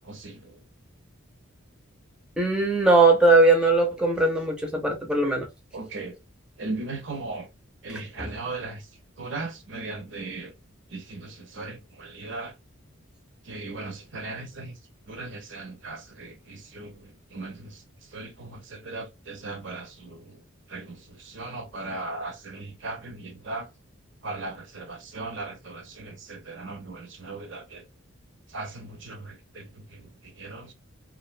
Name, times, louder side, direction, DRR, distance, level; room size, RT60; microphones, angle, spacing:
voice 1, 0.0-0.6 5.7-6.2 6.6-7.5 7.8-8.9 9.2-10.5 10.9-12.5 13.5-14.8 15.1-17.8 18.1-20.4 20.7-23.7 24.2-27.8 28.5-30.7, right 3 dB, 55° right, 0.6 m, -38 dB
voice 2, 2.4-5.5, right 3 dB, 5° right, 0.5 m, -20 dB
2.5 x 2.1 x 2.4 m
head